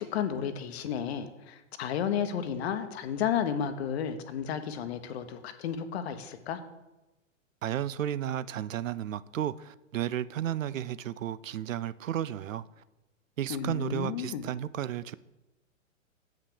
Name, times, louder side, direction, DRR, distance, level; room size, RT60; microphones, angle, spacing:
voice 1, 0.0-6.6 13.5-14.5, left 8 dB, 50° left, 1.0 m, -32 dB
voice 2, 7.6-12.6 13.4-15.1, right 11 dB, 75° right, 0.6 m, -33 dB
7.7 x 6.0 x 6.9 m
figure-of-eight pair, 115°, 40 cm